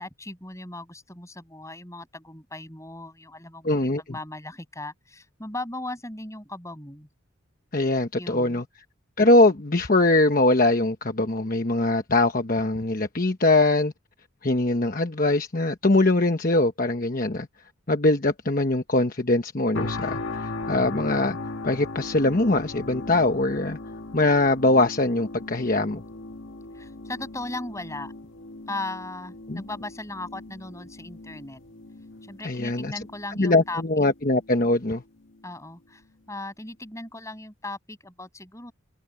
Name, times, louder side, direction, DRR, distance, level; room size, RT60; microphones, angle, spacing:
voice 1, 0.0-3.8 4.1-7.1 8.1-8.6 26.7-28.1 28.7-31.6 32.2-33.8 35.4-36.0 36.3-38.7, left 2 dB, 15° left, 7.1 m, -37 dB
voice 2, 3.6-4.0 7.7-8.6 9.2-13.9 14.4-17.5 17.9-21.4 21.6-23.8 24.1-26.0 29.5-29.6 32.4-32.9 33.4-35.0, left 2 dB, 45° left, 1.1 m, -22 dB
sound 1, 19.7-34.8 35.2-35.4, left 2 dB, 65° left, 1.9 m, -38 dB
head